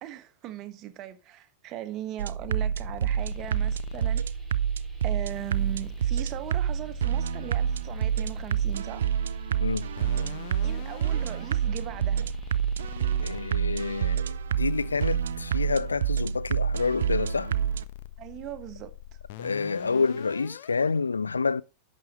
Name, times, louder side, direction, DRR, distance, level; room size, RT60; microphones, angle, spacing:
voice 1, 0.0-4.2 5.0-9.0 10.6-12.3 18.2-18.9, right 13 dB, 35° right, 1.5 m, -39 dB
sound 1, 2.2-17.8, right 9 dB, 65° right, 0.5 m, -28 dB
sound 2, 2.4-20.9, left 12 dB, 50° left, 1.0 m, -44 dB
sound 3, 3.2-14.2, right 1 dB, ahead, 5.1 m, -58 dB
voice 2, 13.2-17.5 19.4-21.6, left 4 dB, 75° left, 0.4 m, -28 dB
11.5 x 7.4 x 4.2 m
figure-of-eight pair, 90°, 0 cm